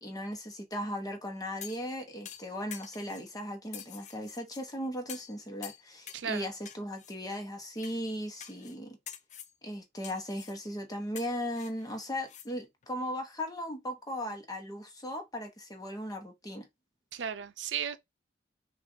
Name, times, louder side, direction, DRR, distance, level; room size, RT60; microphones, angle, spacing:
voice 1, 0.0-9.0 9.6-16.7, equal, 20° left, 0.9 m, -37 dB
sound 1, 1.6-1.9 2.3-3.3 3.7-4.6 5.1-5.4 5.6-6.3 6.7-7.1 7.8-8.0 8.4-8.8 9.1-9.5 10.0-10.6 11.2-12.5 12.8-12.9, left 9 dB, 40° left, 0.4 m, -47 dB
voice 2, 6.1-6.5 17.1-18.0, right 8 dB, 85° right, 0.5 m, -35 dB
6.1 x 2.4 x 2.6 m
head